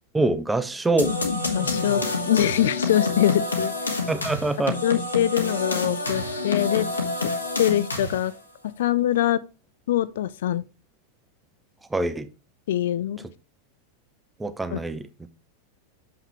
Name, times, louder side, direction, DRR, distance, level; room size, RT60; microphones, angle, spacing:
voice 1, 0.1-1.1 4.1-4.8 11.9-12.3 14.4-15.1, right 2 dB, 10° right, 0.7 m, -24 dB
sound 1, 1.0-8.4, left 3 dB, 75° left, 1.5 m, -27 dB
voice 2, 1.5-3.7 4.8-6.9 7.6-8.3 8.8-9.4 9.9-10.6 12.7-13.2 14.7-14.8, left 12 dB, 60° left, 0.5 m, -23 dB
7.3 x 5.7 x 3.4 m
figure-of-eight pair, 90°, 0 cm